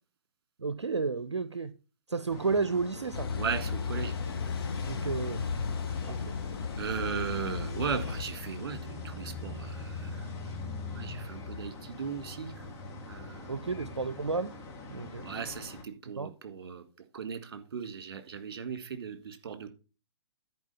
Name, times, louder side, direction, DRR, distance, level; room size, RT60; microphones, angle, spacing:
voice 1, 0.6-1.7 2.1-3.3 4.8-5.4 6.0-6.2 7.8-7.9 13.5-14.5 14.9-15.3 16.1-16.3, right 4 dB, 75° right, 0.6 m, -32 dB
sound 1, 2.3-15.8, left 3 dB, 20° left, 1.8 m, -42 dB
Car passing by / Idling / Accelerating revving vroom, 3.1-8.2, left 5 dB, 55° left, 1.1 m, -34 dB
voice 2, 3.3-4.2 6.8-9.9 10.9-12.5 13.0-13.4 15.2-16.8 17.1-19.7, right 6 dB, 50° right, 1.8 m, -37 dB
10.5 x 4.7 x 5.5 m
figure-of-eight pair, 125°, 15 cm